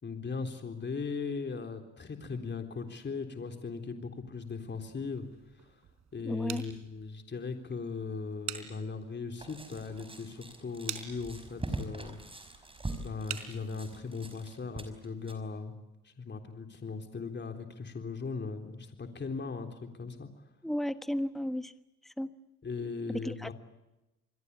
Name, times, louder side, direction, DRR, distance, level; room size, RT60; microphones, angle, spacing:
voice 1, 0.0-5.3 6.1-12.2 12.5-12.6 13.0-15.8 16.0-20.3 22.6-23.5, left 4 dB, 35° left, 5 dB, 3.7 m, -38 dB
sound 1, 4.4-14.2, right 9 dB, 65° right, 4.1 m, -47 dB
voice 2, 6.2-6.6 20.6-21.7 22.0-22.3 23.1-23.5, equal, ahead, 11 dB, 1.2 m, -34 dB
sound 2, 9.4-15.3, right 2 dB, 20° right, 5.5 m, -42 dB
28.0 x 21.5 x 8.4 m, 0.98 s
cardioid pair, 90°, 30 cm